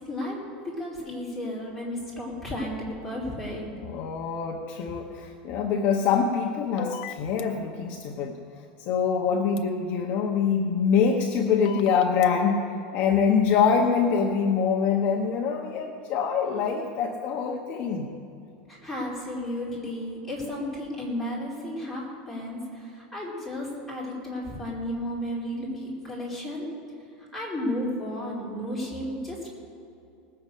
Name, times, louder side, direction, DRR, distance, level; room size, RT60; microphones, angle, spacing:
voice 1, 0.0-3.7 18.7-26.7 27.2-29.5, left 1 dB, ahead, -7 dB, 4.2 m, -33 dB
voice 2, 3.7-8.4 8.8-18.1 18.4-18.5, left 6 dB, 40° left, 1 dB, 1.0 m, -25 dB
sound 1, 6.8-7.4 9.6-9.7 11.7-12.3, left 9 dB, 65° left, 0.7 m, -37 dB
19.0 x 6.8 x 8.4 m, 2.7 s
supercardioid pair, 170°, 5 cm